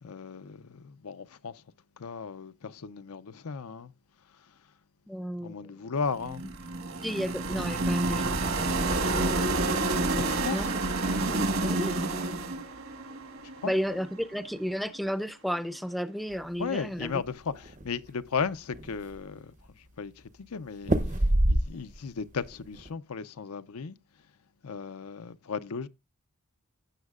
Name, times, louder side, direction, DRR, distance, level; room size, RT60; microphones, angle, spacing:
voice 1, 0.0-1.6 2.0-3.9 4.3-4.5 5.4-6.4 10.2-10.7 11.3-11.7 13.6-13.7 16.6-24.0 24.6-25.9, left 5 dB, 80° left, 0.6 m, -36 dB
voice 2, 5.1-5.7 7.0-9.8 10.5-10.7 11.6-12.0 13.6-17.1, equal, ahead, 0.5 m, -33 dB
sound 1, 6.1-14.2, right 2 dB, 65° right, 1.7 m, -29 dB
sound 2, 17.0-17.9 18.3-18.4 18.7-19.4 20.8-22.1 22.4-22.9, right 1 dB, 35° right, 0.7 m, -26 dB
16.0 x 7.3 x 2.4 m
head